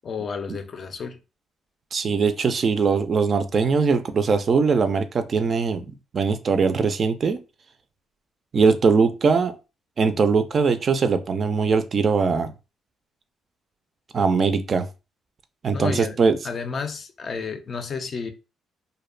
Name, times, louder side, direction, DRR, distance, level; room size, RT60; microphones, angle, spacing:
voice 1, 0.0-1.2 15.7-16.2 16.4-18.3, left 5 dB, 50° left, 0.4 m, -31 dB
voice 2, 1.9-7.4 8.5-9.5 10.0-12.5 14.1-14.9 15.6-16.4, right 5 dB, 45° right, 0.3 m, -21 dB
2.6 x 2.1 x 2.4 m
cardioid pair, 90°, 0 cm